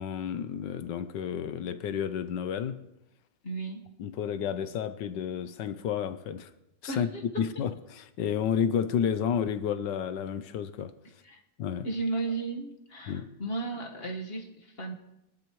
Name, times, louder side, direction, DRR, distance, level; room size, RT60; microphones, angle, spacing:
voice 1, 0.0-2.8 4.0-6.5 6.8-7.1 7.4-10.9 11.6-11.9 13.1-13.3, left 8 dB, 70° left, 1.3 m, -31 dB
voice 2, 3.4-3.8 6.9-7.2 11.2-11.4 11.8-14.9, right 3 dB, 35° left, 1.5 m, -34 dB
22.5 x 12.0 x 3.1 m
omnidirectional pair, 2.1 m